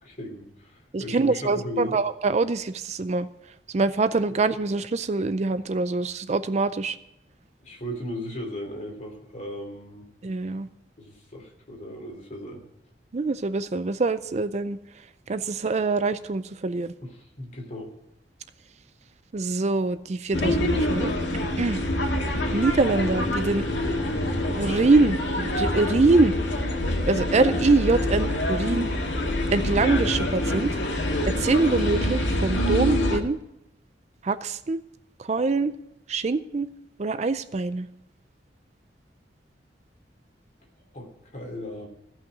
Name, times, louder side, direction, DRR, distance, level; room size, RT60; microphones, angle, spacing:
voice 1, 0.0-2.0 7.6-10.1 11.0-12.7 17.0-17.9 40.9-41.9, left 1 dB, 40° left, 1 dB, 2.9 m, -37 dB
voice 2, 0.9-3.3 3.7-7.0 10.2-10.7 13.1-14.8 15.3-16.9 19.3-21.1 21.6-21.8 22.5-23.6 24.6-26.3 27.1-28.9 29.5-30.7 31.3-33.4 34.2-34.8 35.3-35.7 36.1-36.7 37.0-37.9, right 3 dB, 40° right, 13 dB, 0.4 m, -24 dB
sound 1, 20.3-33.2, left 1 dB, 85° left, 2.0 m, -26 dB
15.5 x 5.7 x 9.1 m, 0.82 s
head